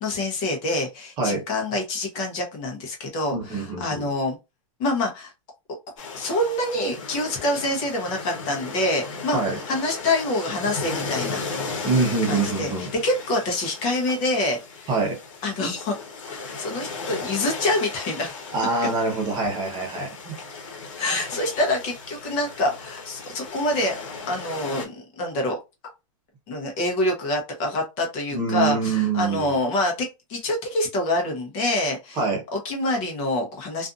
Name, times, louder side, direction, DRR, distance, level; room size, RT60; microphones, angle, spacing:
voice 1, 0.0-4.4 4.8-5.3 6.1-9.4 9.7-11.4 12.3-14.9 15.4-16.0 16.4-18.3 21.0-24.0 24.3-25.6 26.5-32.2 32.5-33.9, left 1 dB, 30° left, 0.8 m, -26 dB
voice 2, 3.3-4.1 9.3-9.6 11.8-12.9 14.9-15.2 18.5-20.4 28.3-29.6 32.2-32.4, right 4 dB, 25° right, 0.8 m, -25 dB
sound 1, 6.0-24.9, left 4 dB, 70° left, 1.1 m, -36 dB
2.5 x 2.5 x 2.4 m
supercardioid pair, 155°, 17 cm